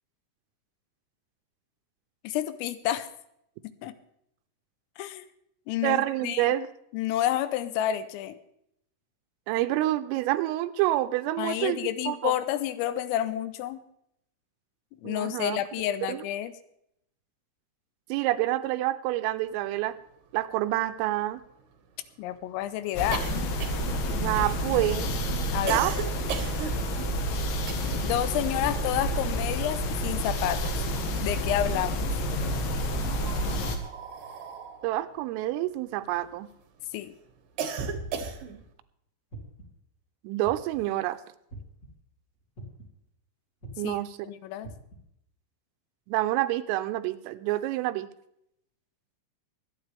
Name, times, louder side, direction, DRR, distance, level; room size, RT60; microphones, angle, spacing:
voice 1, 2.2-3.1 3.6-3.9 5.0-5.3 5.7-6.5 6.9-8.4 11.4-13.8 15.0-16.5 22.2-23.3 25.5-25.8 28.0-30.8 31.2-32.1 36.9-37.1 43.8-44.0 44.2-44.7, left 12 dB, 90° left, 13 dB, 3.5 m, -30 dB
voice 2, 5.8-6.7 9.5-12.3 15.0-15.6 16.1-16.2 18.1-20.0 20.3-21.4 24.2-25.1 25.7-25.9 34.8-36.5 40.2-41.2 43.8-44.2 46.1-48.1, right 15 dB, 85° right, 11 dB, 3.3 m, -27 dB
sound 1, 20.0-20.1 20.3-20.4 20.7-28.2 28.5-30.1 30.4-31.3 32.1-36.6 37.0-38.7, right 6 dB, 65° right, 2.3 m, -38 dB
sound 2, 23.0-33.8, equal, 70° left, 3.6 m, -29 dB
sound 3, 38.2-38.6 39.3-39.8 40.4-40.9 41.5-41.9 42.6-43.0 43.6-43.9 44.6-45.0, right 4 dB, 25° left, 1.7 m, -43 dB
24.0 x 9.3 x 3.4 m, 0.75 s
omnidirectional pair, 5.9 m